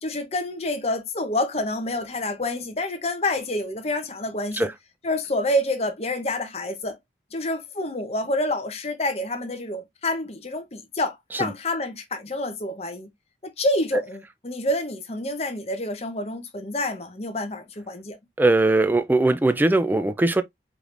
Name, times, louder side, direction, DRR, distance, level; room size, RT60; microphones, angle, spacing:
voice 1, 0.0-4.7 5.0-7.0 7.3-13.1 13.4-18.2, left 1 dB, 35° left, 0.9 m, -28 dB
voice 2, 18.4-20.4, right 2 dB, 10° right, 0.3 m, -20 dB
5.0 x 3.1 x 2.5 m
head